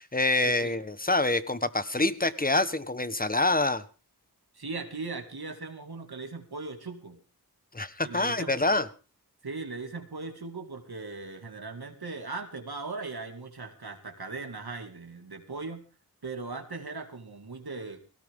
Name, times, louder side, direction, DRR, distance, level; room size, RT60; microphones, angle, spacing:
voice 1, 0.0-3.8 7.7-8.9, left 2 dB, 25° left, 13 dB, 1.2 m, -26 dB
voice 2, 4.5-7.2 8.0-8.8 9.4-15.8 16.2-18.0, right 3 dB, 75° right, 5 dB, 2.3 m, -39 dB
17.5 x 16.5 x 3.7 m, 0.35 s
wide cardioid pair, 50°, 38 cm